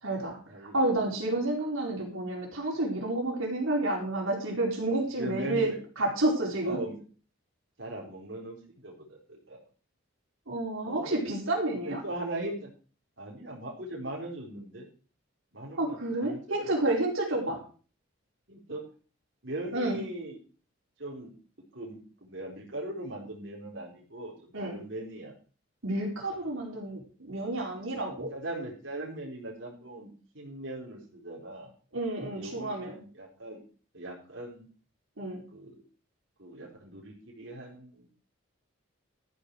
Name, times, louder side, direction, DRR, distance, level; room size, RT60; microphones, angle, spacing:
voice 1, 0.0-0.4 0.7-5.7 6.0-6.8 10.5-12.0 15.8-17.6 19.7-20.0 24.5-24.8 25.8-28.3 31.9-33.0 35.2-35.4, right 2 dB, 80° right, -1 dB, 4.4 m, -30 dB
voice 2, 5.2-5.8 6.6-7.0 7.8-9.6 10.9-11.1 11.8-12.7 13.2-14.9 15.5-16.4 18.5-18.9 19.4-20.4 21.0-21.3 21.7-25.3 28.3-31.7 32.3-33.6 33.9-34.6 35.5-35.7 36.4-38.1, right 1 dB, 60° right, -3 dB, 4.3 m, -39 dB
13.5 x 9.9 x 4.8 m, 0.38 s
head